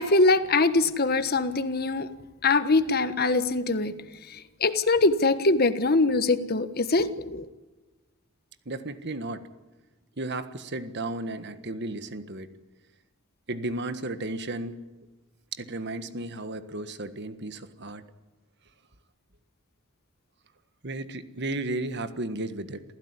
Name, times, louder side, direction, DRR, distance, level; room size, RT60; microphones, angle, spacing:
voice 1, 0.0-2.1 2.4-3.9 4.3-7.5, left 3 dB, 45° left, 12 dB, 1.4 m, -23 dB
voice 2, 8.6-9.5 10.2-12.5 13.5-14.8 15.5-18.0 20.8-22.8, right 2 dB, 55° right, 11 dB, 1.6 m, -34 dB
27.5 x 16.0 x 9.8 m, 1.2 s
head